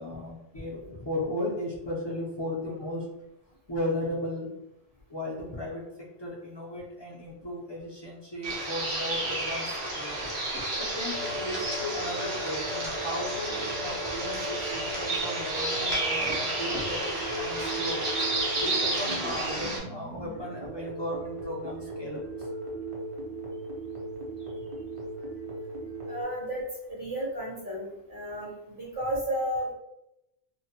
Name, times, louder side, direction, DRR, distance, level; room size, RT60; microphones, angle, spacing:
voice 1, 0.0-3.0 3.7-4.5 5.1-5.8 6.2-10.2 10.8-18.1 18.6-22.5, left 1 dB, 40° left, -5 dB, 0.4 m, -36 dB
sound 1, 8.4-19.8, right 2 dB, 75° right, 1.1 m, -31 dB
sound 2, 11.1-26.2, right 1 dB, 35° right, 0.6 m, -38 dB
voice 2, 26.1-29.7, equal, 55° right, -6 dB, 1.2 m, -33 dB
2.9 x 2.0 x 2.8 m, 0.87 s
omnidirectional pair, 1.1 m